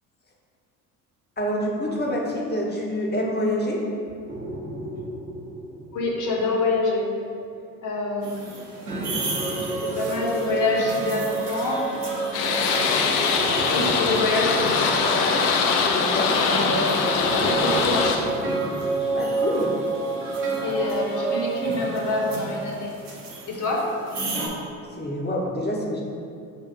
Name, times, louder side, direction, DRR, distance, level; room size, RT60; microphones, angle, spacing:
voice 1, 1.4-3.8 15.8-16.3 19.1-19.7 24.3-24.5 25.0-26.0, left 1 dB, 20° left, -2 dB, 0.9 m, -27 dB
sound 1, 1.8-3.1 4.3-7.3 8.9-12.1 13.3-16.6 17.2-20.4, right 1 dB, 25° right, 1.1 m, -37 dB
voice 2, 5.9-7.1 7.8-8.5 9.6-13.2 13.7-15.4 16.4-18.5 20.6-22.9 23.5-23.9, left 2 dB, 40° left, -2 dB, 1.1 m, -27 dB
sound 2, 8.2-24.5, right 3 dB, 90° right, 0.8 m, -30 dB
sound 3, 12.3-18.2, left 5 dB, 80° left, 0.6 m, -22 dB
6.7 x 2.8 x 2.5 m, 2.5 s
hypercardioid pair, 60°, 45 cm